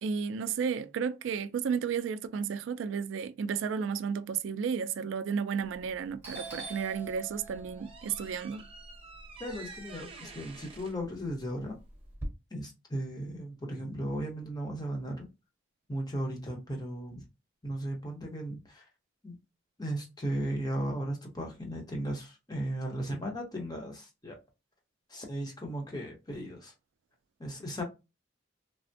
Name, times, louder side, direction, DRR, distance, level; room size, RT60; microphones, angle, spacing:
voice 1, 0.0-8.7, right 6 dB, 85° right, 0.3 m, -33 dB
Doorbell, 5.6-5.9 6.2-10.4 10.7-12.3, right 2 dB, 10° right, 1.0 m, -45 dB
sound 1, 7.0-12.2, right 3 dB, 30° right, 0.5 m, -49 dB
voice 2, 9.4-11.8 12.5-15.3 15.9-17.2 17.6-18.8 19.2-19.3 19.8-24.4 25.1-26.7 27.4-27.8, right 1 dB, 20° left, 0.9 m, -36 dB
3.3 x 2.1 x 2.6 m
head